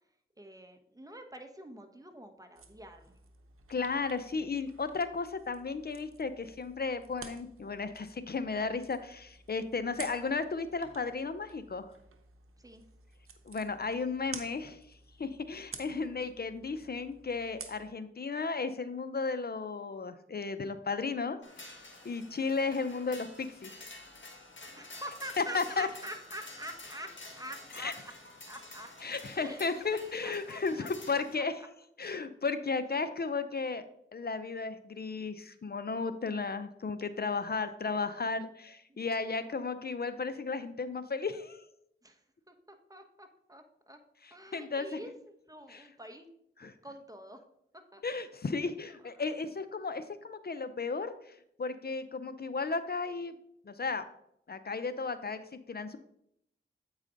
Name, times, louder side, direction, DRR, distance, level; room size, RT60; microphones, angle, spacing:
voice 1, 0.4-3.2 12.6-12.8 24.8-28.1 28.5-28.9 29.3-30.9 31.4-31.7 38.9-39.0 42.0-44.0 44.3-46.3 46.8-47.4 47.7-48.0 48.9-49.1, right 1 dB, 15° right, 5 dB, 1.1 m, -47 dB
sound 1, 2.6-17.9, right 5 dB, 80° right, 0.8 m, -52 dB
voice 2, 3.7-11.9 13.5-14.8 15.2-23.9 25.4-25.9 27.8-27.9 29.0-31.5 32.0-41.6 44.5-44.9 45.7-45.8 46.6-46.7 48.0-53.3 53.7-54.0 54.5-55.4 55.7-56.0, left 4 dB, 50° left, 11 dB, 0.6 m, -34 dB
sound 2, 21.4-31.3, left 2 dB, 65° left, 1.7 m, -50 dB
8.3 x 4.9 x 3.9 m, 0.74 s
cardioid pair, 50°, 21 cm